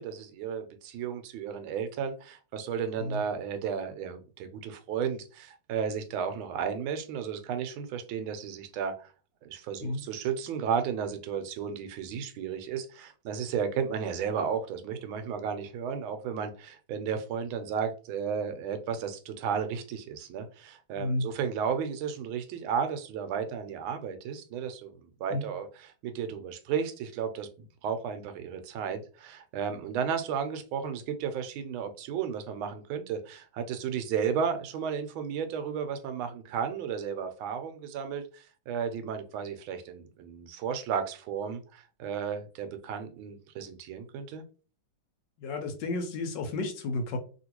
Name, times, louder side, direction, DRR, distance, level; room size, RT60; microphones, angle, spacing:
voice 1, 0.0-9.1 9.4-25.7 26.0-27.5 27.8-44.4, right 7 dB, 85° right, 9 dB, 1.4 m, -33 dB
voice 2, 21.0-21.3 25.3-25.4 45.4-47.2, left 2 dB, 70° left, 5 dB, 1.2 m, -32 dB
3.0 x 2.8 x 2.9 m, 0.38 s
omnidirectional pair, 2.2 m